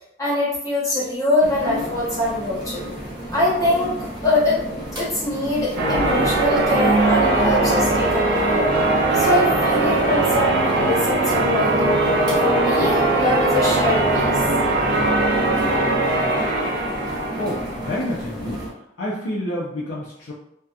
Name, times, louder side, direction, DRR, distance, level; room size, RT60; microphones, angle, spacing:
voice 1, 0.2-2.8 3.3-3.9 4.2-4.6 5.0-8.7 9.1-11.9 12.4-14.4, left 1 dB, 20° left, -7 dB, 0.9 m, -23 dB
sound 1, 1.4-18.7, equal, 25° right, 0.7 m, -33 dB
Church bell, 5.8-18.0, right 2 dB, 70° right, 0.7 m, -20 dB
voice 2, 17.4-18.7 19.0-20.3, left 1 dB, 85° left, -7 dB, 0.5 m, -28 dB
2.7 x 2.2 x 2.3 m, 0.81 s
head